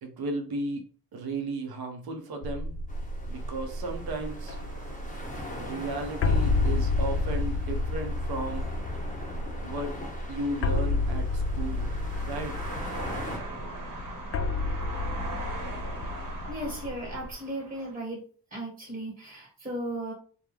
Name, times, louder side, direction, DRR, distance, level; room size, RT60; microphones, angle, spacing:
voice 1, 0.0-2.8 3.3-4.6 5.6-8.7 9.6-10.0 10.3-11.9 12.2-12.6, right 2 dB, 70° right, 5 dB, 0.7 m, -35 dB
sound 1, 2.4-17.3, left 2 dB, 40° left, 0.4 m, -31 dB
sound 2, 2.9-13.4, left 1 dB, 20° left, 1.0 m, -41 dB
sound 3, 3.3-18.0, right 2 dB, 55° right, 1.1 m, -43 dB
voice 2, 16.5-18.2 18.5-20.1, right 1 dB, 20° right, -3 dB, 1.4 m, -36 dB
2.2 x 2.2 x 3.1 m, 0.41 s
supercardioid pair, 40°, 38 cm